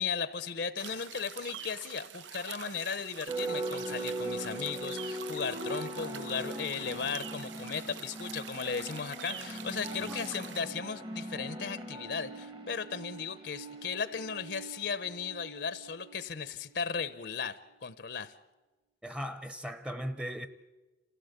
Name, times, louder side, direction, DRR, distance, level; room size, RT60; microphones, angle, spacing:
voice 1, 0.0-18.3, left 6 dB, 65° left, 0.8 m, -36 dB
sound 1, 0.8-10.7, right 9 dB, 85° right, 0.7 m, -46 dB
sound 2, 3.3-16.6, right 1 dB, 25° right, 1.2 m, -40 dB
voice 2, 19.0-20.5, equal, 5° right, 0.8 m, -38 dB
27.5 x 16.0 x 8.1 m
head